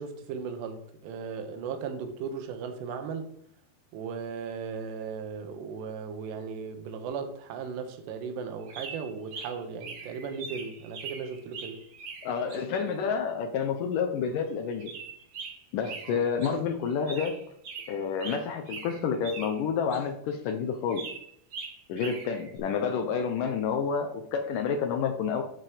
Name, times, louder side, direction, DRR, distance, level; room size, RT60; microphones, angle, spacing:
voice 1, 0.0-3.3 3.9-11.8 15.8-16.2 16.5-16.6, right 5 dB, 85° right, 3.3 m, -37 dB
sound 1, 8.7-12.6 14.8-16.6 16.8-19.6 19.9-20.0 20.9-22.6, right 5 dB, 50° right, 2.1 m, -42 dB
voice 2, 12.2-14.9 15.7-17.4 17.9-21.0 21.9-25.4, left 6 dB, 80° left, 1.9 m, -29 dB
11.5 x 4.8 x 5.0 m
omnidirectional pair, 4.8 m